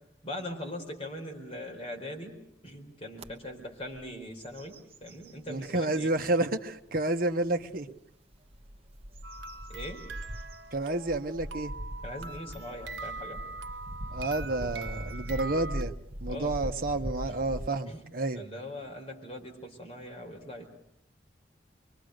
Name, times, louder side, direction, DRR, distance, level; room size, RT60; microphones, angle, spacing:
voice 1, 0.2-2.4 2.6-6.1 9.7-10.0 12.0-13.4 16.3-16.7 17.3-17.4 17.9-18.0 18.3-20.7, left 1 dB, 30° left, 0 dB, 4.3 m, -41 dB
sound 1, 3.2-3.3 3.8-4.1 4.4-5.9 6.5-6.6 8.3-17.7, equal, 35° right, 1.0 m, -41 dB
voice 2, 5.5-7.9 10.7-11.7 14.1-15.9 16.2-18.4, right 2 dB, 50° right, 6 dB, 1.1 m, -30 dB
sound 2, 9.2-15.8, right 3 dB, 75° right, 0.8 m, -43 dB
24.5 x 24.0 x 6.5 m, 0.77 s
head